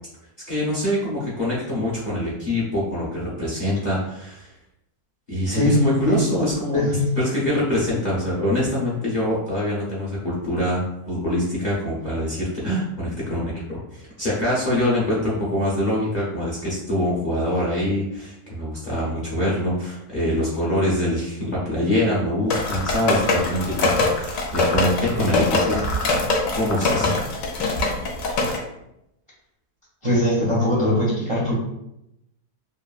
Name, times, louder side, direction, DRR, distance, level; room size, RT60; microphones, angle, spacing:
voice 1, 0.5-4.5 5.3-6.9 7.2-25.8 26.6-27.1, left 1 dB, 45° left, -7 dB, 0.6 m, -24 dB
voice 2, 6.7-7.2 25.1-25.8 30.0-31.5, left 1 dB, 50° right, -7 dB, 0.4 m, -21 dB
sound 1, 22.5-28.6, left 3 dB, 70° left, 0.9 m, -23 dB
3.0 x 2.4 x 2.3 m, 0.84 s
omnidirectional pair, 1.6 m